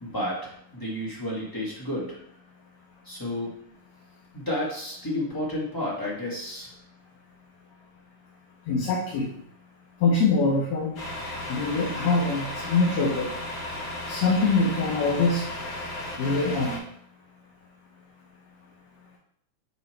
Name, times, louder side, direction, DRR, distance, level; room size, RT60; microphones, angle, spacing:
voice 1, 0.0-2.2 3.0-3.5 4.3-6.7, left 1 dB, 15° left, -6 dB, 0.7 m, -31 dB
voice 2, 8.7-9.3 10.0-10.9 11.5-13.3 14.1-15.4 16.2-16.8, left 3 dB, 70° left, -2 dB, 1.9 m, -24 dB
Truck, 11.0-16.8, left 1 dB, 50° left, 1.3 m, -35 dB
8.0 x 3.1 x 4.3 m, 0.68 s
omnidirectional pair, 3.5 m